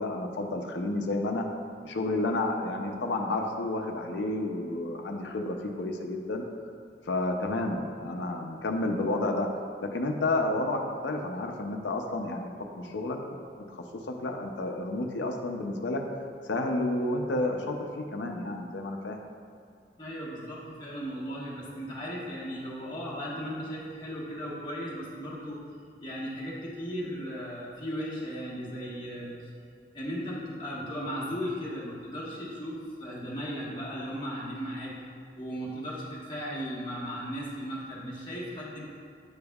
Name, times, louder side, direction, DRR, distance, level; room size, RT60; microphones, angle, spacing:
voice 1, 0.0-1.5 1.8-6.4 7.1-9.5 9.8-12.5 12.8-13.2 13.7-16.0 16.5-19.2, left 2 dB, 90° left, 3 dB, 0.6 m, -30 dB
voice 2, 20.0-25.6 26.0-29.4 29.9-35.0 35.3-38.8, equal, 25° left, -7 dB, 1.3 m, -36 dB
8.7 x 5.2 x 2.3 m, 2.3 s
head